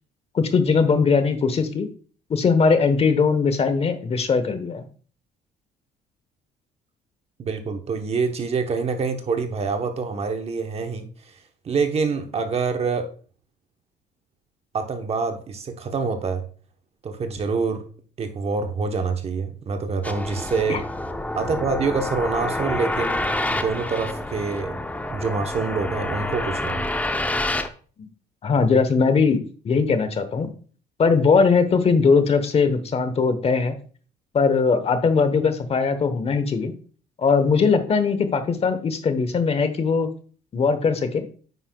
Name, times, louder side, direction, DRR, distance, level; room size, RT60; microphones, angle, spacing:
voice 1, 0.3-1.9 2.3-4.8 20.7-20.8 28.0-28.1 28.4-30.5 31.0-33.8 34.3-36.7 37.2-40.1 40.5-41.2, left 5 dB, 35° left, 1.0 m, -20 dB
voice 2, 7.4-11.3 11.6-13.1 14.7-16.4 17.0-17.9 18.2-20.8 21.3-24.8 25.1-26.9, right 4 dB, 35° right, 1.0 m, -26 dB
sound 1, 20.0-27.7, left 1 dB, 10° left, 0.6 m, -28 dB
9.3 x 5.6 x 2.3 m
cardioid pair, 110°, 17 cm